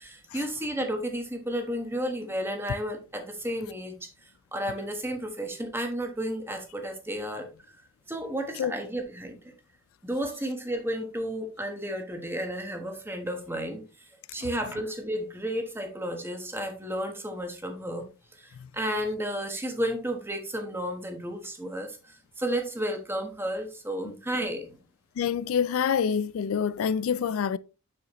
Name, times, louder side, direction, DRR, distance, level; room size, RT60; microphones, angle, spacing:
voice 1, 0.0-7.5 8.1-9.5 10.0-18.0 18.3-24.8, equal, 10° right, 1.2 m, -32 dB
voice 2, 25.2-27.6, left 7 dB, 75° left, 0.3 m, -26 dB
6.8 x 6.3 x 3.0 m
head